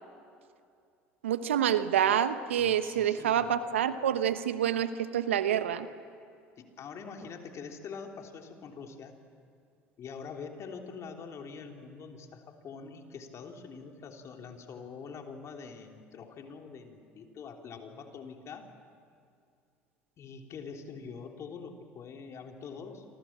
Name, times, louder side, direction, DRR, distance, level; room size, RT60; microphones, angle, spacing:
voice 1, 1.2-5.9, right 9 dB, 85° right, 12 dB, 1.0 m, -27 dB
voice 2, 2.6-3.5 6.6-9.1 10.0-18.7 20.2-23.0, left 5 dB, 50° left, 3 dB, 3.3 m, -44 dB
27.5 x 25.0 x 7.4 m, 2.4 s
hypercardioid pair, 65°, 6 cm